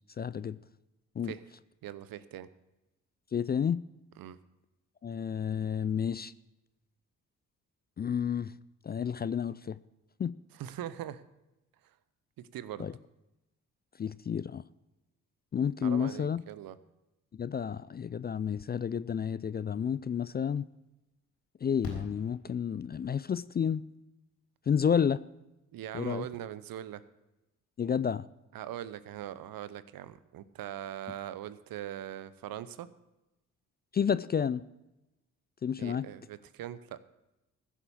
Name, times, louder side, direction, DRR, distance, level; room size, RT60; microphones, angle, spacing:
voice 1, 0.2-0.6 1.2-1.3 3.3-3.8 5.0-6.3 8.0-8.5 8.8-9.8 10.2-10.3 12.8-12.9 14.0-14.6 15.5-16.4 17.4-20.7 21.6-23.8 24.7-25.2 25.9-26.3 27.8-28.2 33.9-34.6 35.6-36.1, left 7 dB, 25° left, 17 dB, 0.4 m, -30 dB
voice 2, 1.8-2.5 4.2-4.4 10.6-11.2 12.5-12.9 15.8-16.8 25.7-27.0 28.5-32.9 35.8-37.0, right 11 dB, 60° right, 15 dB, 0.8 m, -41 dB
Fireworks, 21.8-23.1 24.9-25.0 25.2-25.3, left 2 dB, 75° left, 4.3 m, -44 dB
15.5 x 7.3 x 7.0 m, 0.96 s
hypercardioid pair, 45°, 39 cm